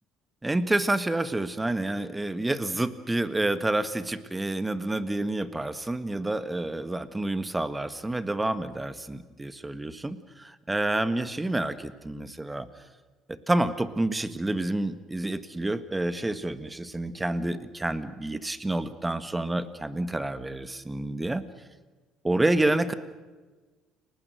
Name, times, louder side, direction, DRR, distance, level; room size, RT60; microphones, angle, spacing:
voice 1, 0.4-12.7 13.3-21.4 22.2-22.9, right 2 dB, 15° right, 12 dB, 1.7 m, -28 dB
30.0 x 19.0 x 6.4 m, 1.3 s
hypercardioid pair, 60°, 0 cm